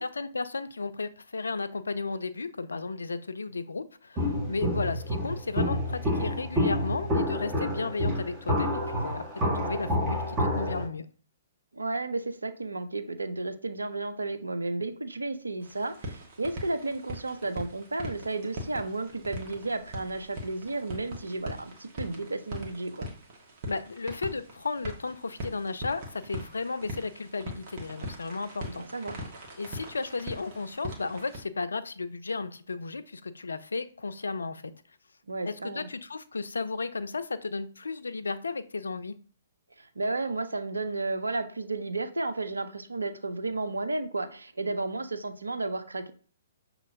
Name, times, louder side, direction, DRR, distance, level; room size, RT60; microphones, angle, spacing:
voice 1, 0.0-11.1 23.7-28.8 29.6-34.7 35.5-39.2, left 4 dB, 75° left, 12 dB, 0.4 m, -34 dB
Walk footsteps, 4.2-10.8, left 1 dB, 15° right, 1.7 m, -28 dB
voice 2, 11.7-23.1 28.7-29.2 35.3-35.9 39.8-46.1, right 2 dB, 80° right, 9 dB, 0.6 m, -33 dB
sound 1, 15.6-31.4, equal, 40° right, 1.4 m, -41 dB
6.4 x 2.9 x 2.6 m, 0.43 s
figure-of-eight pair, 120°, 0 cm